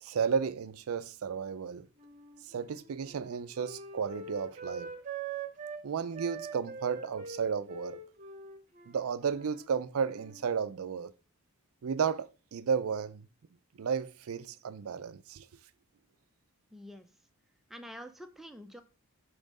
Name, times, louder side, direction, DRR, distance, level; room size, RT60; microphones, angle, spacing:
voice 1, 0.0-1.9 2.5-4.9 5.8-8.0 8.9-11.1 11.8-13.3 13.8-15.5, right 6 dB, 75° right, 0.4 m, -33 dB
Wind instrument woodwind instrument, 1.9-5.8 6.1-9.7 10.0-10.5, right 4 dB, 35° right, 0.8 m, -44 dB
voice 2, 16.7-17.1 17.7-18.8, equal, ahead, 0.5 m, -47 dB
7.0 x 3.1 x 5.2 m
head